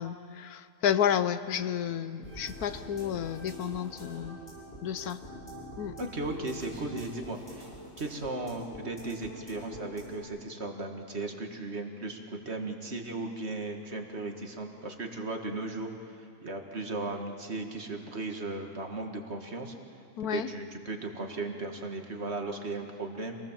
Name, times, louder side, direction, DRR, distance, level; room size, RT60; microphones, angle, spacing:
voice 1, 0.0-4.4 4.8-5.2 5.8-5.9 20.2-20.5, left 9 dB, 75° left, 13 dB, 1.2 m, -31 dB
sound 1, 2.2-10.2, equal, 35° left, 6.9 m, -45 dB
voice 2, 6.0-7.7 8.0-19.8 20.3-23.4, right 2 dB, 45° right, 3 dB, 2.0 m, -36 dB
27.0 x 19.0 x 7.4 m, 2.4 s
omnidirectional pair, 1.6 m